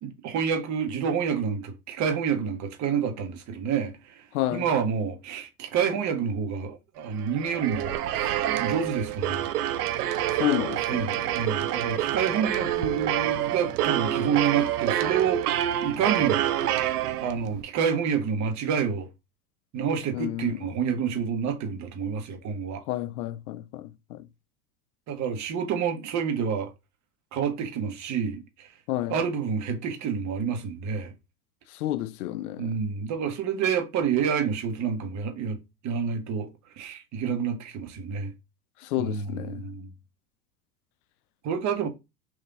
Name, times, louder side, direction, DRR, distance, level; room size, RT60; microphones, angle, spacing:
voice 1, 0.0-4.2 4.5-9.5 10.9-16.4 17.2-19.1 19.7-22.8 25.1-26.7 27.3-28.7 29.1-31.1 32.6-36.5 36.8-38.3 39.0-39.9 41.4-41.9, right 7 dB, 40° right, 1.1 m, -28 dB
voice 2, 4.3-4.7 10.4-11.1 20.1-20.6 22.9-24.2 28.9-29.2 31.8-32.7 38.8-39.7, left 14 dB, 75° left, 0.6 m, -30 dB
sound 1, 7.2-17.6, right 12 dB, 80° right, 0.6 m, -27 dB
3.6 x 2.7 x 3.8 m
hypercardioid pair, 105°, 45 cm